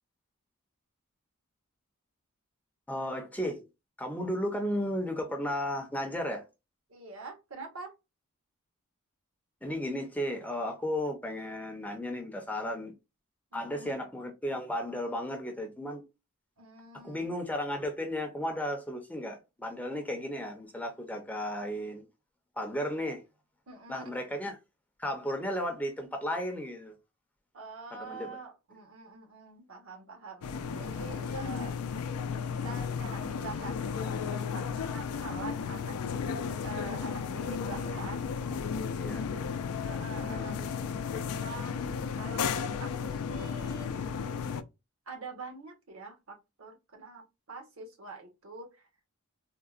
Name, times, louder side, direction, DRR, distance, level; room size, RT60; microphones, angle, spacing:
voice 1, 2.9-3.7 4.0-6.4 9.6-12.9 13.5-16.1 17.0-22.1 22.6-23.2 23.9-24.6 25.0-27.0 28.0-28.4 39.0-39.2 40.3-40.7, equal, 5° left, 0.5 m, -34 dB
voice 2, 6.9-7.9 13.5-14.0 16.6-17.3 23.7-24.2 27.5-31.8 32.5-33.8 34.3-35.9 36.6-38.2 39.8-40.7 41.4-44.1 45.1-48.9, right 3 dB, 65° right, 1.1 m, -45 dB
sound 1, 30.4-44.6, left 6 dB, 85° left, 0.4 m, -34 dB
3.7 x 2.1 x 2.4 m
head